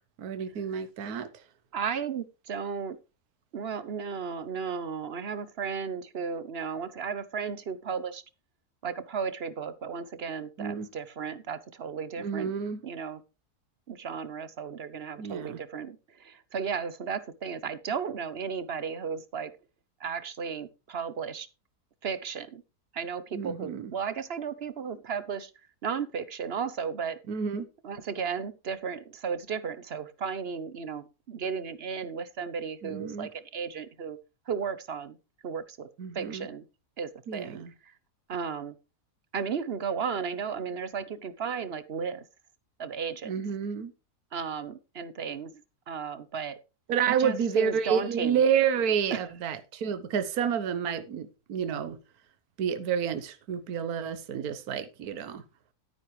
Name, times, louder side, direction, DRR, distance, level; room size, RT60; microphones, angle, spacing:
voice 1, 0.2-1.3 10.6-10.9 12.2-12.8 15.2-15.6 23.3-23.9 27.3-27.7 32.8-33.3 36.0-36.5 37.3-37.7 43.2-43.9 46.9-52.0 52.6-55.4, right 7 dB, 70° right, 1.5 m, -29 dB
voice 2, 1.7-3.0 3.5-8.2 8.8-12.5 12.8-13.2 13.9-19.5 20.0-21.5 22.0-22.6 22.9-25.5 25.8-27.2 27.8-34.2 34.5-35.2 35.4-35.9 36.1-36.6 37.0-37.9 38.3-38.7 39.3-42.2 42.8-43.3 44.3-45.5 45.9-46.6 47.1-48.4 49.1-49.2, right 6 dB, 50° right, 0.9 m, -34 dB
12.5 x 9.7 x 3.2 m
omnidirectional pair, 1.7 m